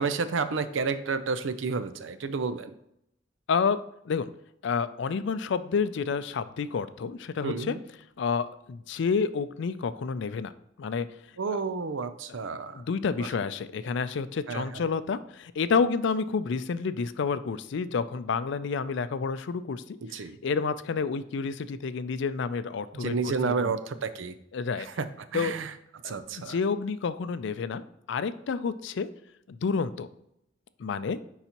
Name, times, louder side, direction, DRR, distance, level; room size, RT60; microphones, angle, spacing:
voice 1, 0.0-2.7 7.4-7.8 11.4-12.8 13.2-13.3 14.5-14.6 20.1-20.4 22.9-24.3 25.0-25.1 25.3-25.7 26.0-26.6, right 4 dB, 75° right, 11 dB, 0.5 m, -30 dB
voice 2, 3.5-3.8 4.0-4.3 4.6-7.8 8.2-10.5 10.8-11.1 12.7-23.8 24.5-24.9 25.3-25.5 26.0-29.1 29.5-30.1 30.8-31.2, left 5 dB, 65° left, 14 dB, 0.4 m, -29 dB
10.0 x 4.0 x 2.9 m, 0.79 s
head